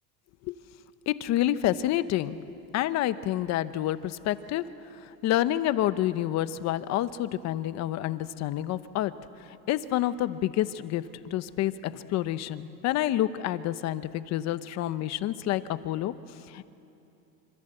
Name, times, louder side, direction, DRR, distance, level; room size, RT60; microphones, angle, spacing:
voice 1, 1.1-4.6 4.9-9.1 9.5-16.7, left 13 dB, 40° left, 13 dB, 0.9 m, -28 dB
26.5 x 25.5 x 7.9 m, 2.9 s
supercardioid pair, 150°, 43 cm